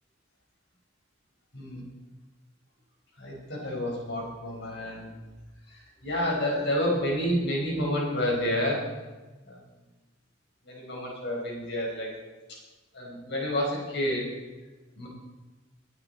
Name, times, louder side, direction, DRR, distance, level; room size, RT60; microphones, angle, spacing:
voice 1, 1.5-1.8 3.2-5.1 5.7-8.8 9.4-9.6 10.6-12.1 12.5-12.6 12.9-14.3 15.0-15.1, left 1 dB, 60° left, -2 dB, 4.9 m, -29 dB
20.5 x 8.8 x 4.2 m, 1.2 s
head